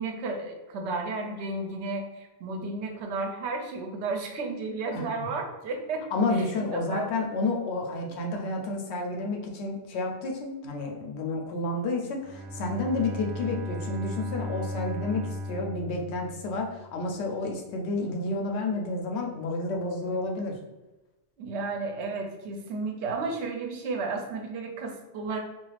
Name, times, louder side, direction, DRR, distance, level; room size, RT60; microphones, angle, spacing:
voice 1, 0.0-7.1 21.4-25.4, right 3 dB, 90° right, 3 dB, 0.9 m, -33 dB
voice 2, 4.9-5.3 6.1-20.6, left 2 dB, 80° left, 2 dB, 0.8 m, -30 dB
Bowed string instrument, 12.2-17.0, equal, 50° right, 0.5 m, -36 dB
2.4 x 2.3 x 3.1 m, 1.1 s
omnidirectional pair, 1.1 m